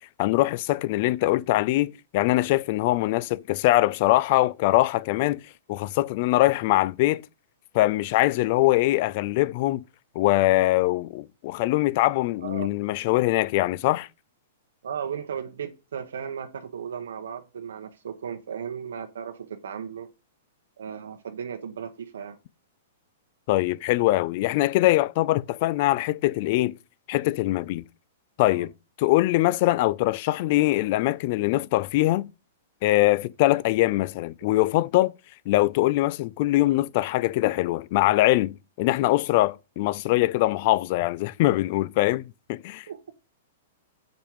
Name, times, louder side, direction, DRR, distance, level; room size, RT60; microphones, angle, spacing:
voice 1, 0.2-5.4 5.7-7.2 7.7-9.8 10.2-14.1 23.5-26.8 27.1-27.9 28.4-28.7 29.0-32.3 32.8-35.1 35.5-42.9, left 17 dB, 45° left, 0.4 m, -22 dB
voice 2, 12.4-12.8 14.8-20.1 20.8-22.4 28.5-28.7 42.9-43.0, right 7 dB, 90° right, 1.0 m, -36 dB
7.1 x 5.2 x 4.6 m
hypercardioid pair, 150°, 0 cm